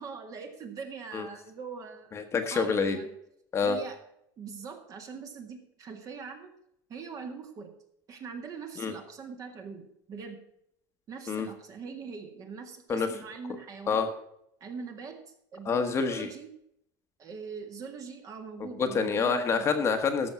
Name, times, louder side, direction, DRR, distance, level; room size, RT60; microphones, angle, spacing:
voice 1, 0.0-2.1 2.5-3.1 3.6-4.0 4.4-6.5 6.9-7.7 8.1-10.4 11.1-14.1 14.6-16.5 17.2-19.7, right 5 dB, 35° right, 5 dB, 1.9 m, -42 dB
voice 2, 2.1-3.0 3.5-3.8 8.8-8.9 11.3-11.5 12.9-13.1 13.9-14.1 15.6-16.3 18.8-20.3, left 5 dB, 30° left, 6 dB, 1.2 m, -27 dB
13.5 x 6.2 x 6.0 m, 0.75 s
cardioid pair, 145°, 10 cm